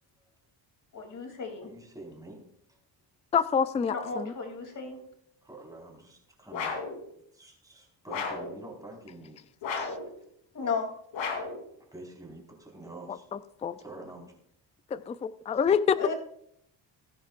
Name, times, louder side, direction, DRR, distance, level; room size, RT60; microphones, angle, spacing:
voice 1, 0.9-1.7 3.9-5.0 10.5-10.9 16.0-16.1, left 4 dB, 45° left, 3 dB, 3.0 m, -34 dB
voice 2, 1.6-2.8 5.4-6.9 7.3-9.4 11.8-13.3 13.8-14.4, right 2 dB, 10° right, -1 dB, 4.5 m, -47 dB
voice 3, 3.3-4.3 9.8-9.9 13.6-13.8 14.9-16.1, left 7 dB, 15° left, 14 dB, 0.3 m, -26 dB
sound 1, 6.5-7.0 8.1-8.5 9.6-10.1 11.1-11.6, left 4 dB, 90° left, 3.3 m, -33 dB
19.0 x 10.5 x 2.5 m, 0.71 s
cardioid pair, 120°, 44 cm